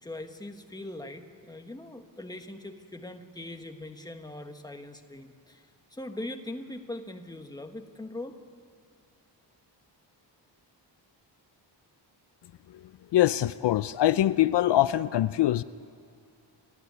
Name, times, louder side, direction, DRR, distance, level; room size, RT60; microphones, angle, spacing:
voice 1, 0.0-8.4, left 1 dB, 10° left, 5 dB, 1.3 m, -41 dB
voice 2, 13.1-15.6, left 13 dB, 70° left, 15 dB, 0.5 m, -23 dB
29.5 x 12.5 x 9.5 m, 2.5 s
wide cardioid pair, 155°, 43 cm